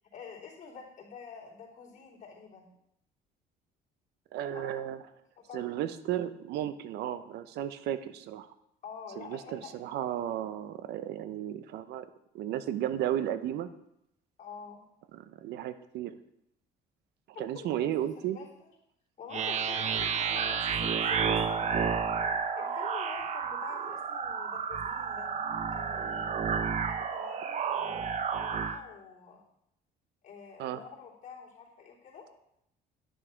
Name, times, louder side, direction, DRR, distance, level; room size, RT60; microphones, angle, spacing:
voice 1, 0.1-2.7 4.5-4.9 5.4-5.7 8.8-9.7 14.4-14.8 17.3-18.7 19.2-25.4 25.7-26.3 26.8-29.5 30.2-32.3, left 6 dB, 50° left, -5 dB, 3.3 m, -47 dB
voice 2, 4.3-5.0 5.5-8.5 9.2-12.1 12.3-13.7 15.1-16.2 17.4-18.4 30.6-30.8, right 11 dB, 80° right, 12 dB, 0.7 m, -34 dB
sound 1, 19.3-28.8, right 6 dB, 45° right, 0.8 m, -31 dB
10.5 x 6.3 x 4.6 m, 0.78 s
cardioid pair, 110°, 17 cm